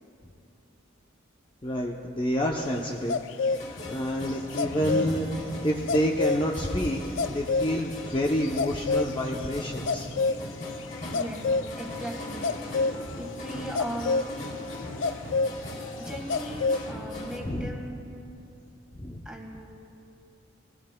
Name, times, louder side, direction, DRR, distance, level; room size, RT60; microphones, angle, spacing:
voice 1, 1.6-3.2 3.5-3.6 3.9-5.3 5.6-7.0 7.3-10.1 17.4-17.7 19.0-19.2, equal, 25° left, -1 dB, 0.6 m, -28 dB
sound 1, 3.1-3.6 4.6-5.1 5.9-6.4 7.2-7.7 8.4-9.2 9.9-10.7 11.1-11.7 12.4-13.2 13.4-15.5 16.3-16.9, left 4 dB, 70° left, 0.4 m, -27 dB
sound 2, 3.5-17.4, left 1 dB, 40° left, 2.5 m, -40 dB
sound 3, 4.7-8.4, equal, 70° right, 2.3 m, -39 dB
voice 2, 11.1-12.6 13.1-14.3 16.0-18.1 19.2-19.7, right 1 dB, 5° right, 0 dB, 1.5 m, -38 dB
22.0 x 16.5 x 2.2 m, 2.7 s
head